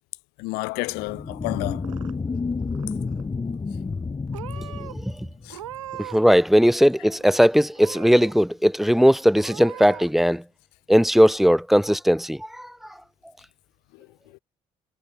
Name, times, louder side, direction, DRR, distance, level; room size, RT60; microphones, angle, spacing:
voice 1, 0.4-1.9 5.4-5.6 13.9-14.4, left 26 dB, 75° left, 4.1 m, -31 dB
sound 1, 0.9-5.9, left 4 dB, 30° left, 4.6 m, -30 dB
Purr / Meow, 1.5-2.4 2.7-3.3 3.9-4.1 4.3-4.9 5.5-6.3 6.6-7.3 7.7-8.3 8.8-8.9 9.4-10.1, right 12 dB, 90° right, 5.1 m, -40 dB
voice 2, 6.1-10.4 10.9-12.7, equal, ahead, 1.8 m, -18 dB
hypercardioid pair, 55°, 16 cm